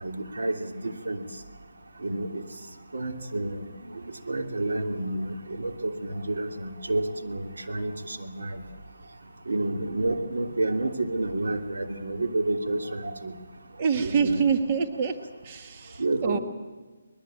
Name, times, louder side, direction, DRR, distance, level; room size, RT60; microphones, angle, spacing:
voice 1, 0.0-1.2 2.0-2.4 2.9-3.6 4.3-8.6 9.5-13.3 14.0-14.4 16.0-16.4, right 2 dB, 85° right, 4 dB, 2.9 m, -29 dB
voice 2, 13.8-15.2 15.4-16.4, right 6 dB, 30° right, 6 dB, 1.5 m, -26 dB
22.0 x 21.0 x 8.9 m, 1.3 s
hypercardioid pair, 165°, 0 cm